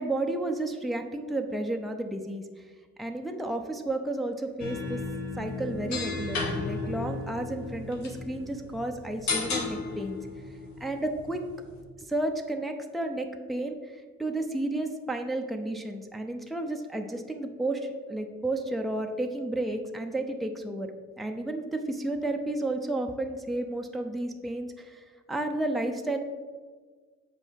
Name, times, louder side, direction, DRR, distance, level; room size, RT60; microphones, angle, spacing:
voice 1, 0.0-2.4 3.0-5.0 5.4-10.2 10.8-11.4 12.0-26.2, right 2 dB, ahead, 3 dB, 0.6 m, -32 dB
sound 1, 4.6-11.8, left 3 dB, 65° left, 1.6 m, -34 dB
6.9 x 5.4 x 4.6 m, 1.5 s
cardioid pair, 90°, 30 cm